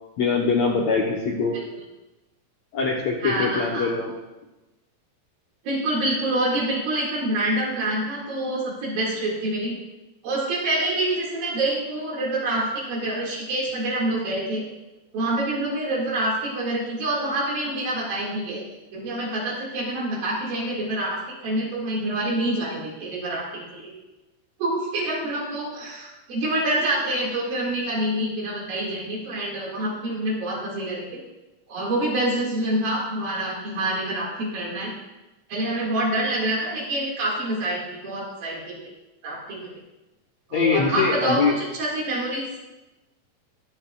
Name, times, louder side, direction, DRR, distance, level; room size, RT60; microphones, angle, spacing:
voice 1, 0.2-1.5 2.7-4.1 40.5-41.5, left 4 dB, 70° left, -2 dB, 1.7 m, -23 dB
voice 2, 3.2-3.9 5.6-9.7 10.2-14.6 15.1-18.6 18.9-23.9 24.6-31.1 31.7-34.9 35.5-38.8 39.2-39.7 40.5-42.4, right 1 dB, 75° right, -4 dB, 3.9 m, -26 dB
22.0 x 7.7 x 2.4 m, 1.0 s
omnidirectional pair, 4.2 m